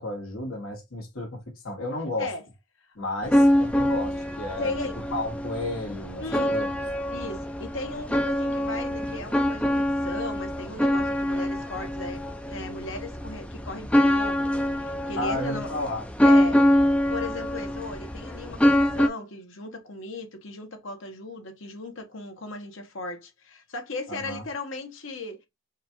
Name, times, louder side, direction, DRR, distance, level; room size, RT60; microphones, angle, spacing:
voice 1, 0.0-2.3 3.0-4.7 5.1-6.7 15.2-16.0 24.1-24.4, left 1 dB, 85° left, 1.8 m, -33 dB
sound 1, 3.2-19.1, left 1 dB, 5° left, 0.4 m, -25 dB
voice 2, 4.6-5.0 6.2-6.6 7.1-15.7 16.2-16.7 17.1-25.5, left 2 dB, 70° left, 1.1 m, -37 dB
4.7 x 2.4 x 2.9 m
head